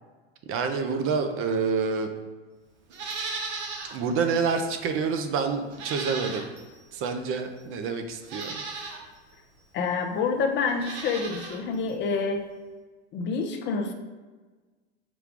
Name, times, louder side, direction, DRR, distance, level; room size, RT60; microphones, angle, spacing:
voice 1, 0.5-2.1 3.9-6.5 6.9-8.6, right 5 dB, 40° right, 7 dB, 0.6 m, -27 dB
Livestock farm animals working animals, 2.9-4.0 4.4-4.5 5.7-6.8 7.6-7.7 8.2-9.0 10.7-11.6 11.9-12.0, right 4 dB, 75° right, 0.9 m, -36 dB
voice 2, 9.7-12.5 13.1-13.9, left 4 dB, 35° left, 5 dB, 0.5 m, -27 dB
4.9 x 2.3 x 3.6 m, 1.3 s
hypercardioid pair, 95°, 34 cm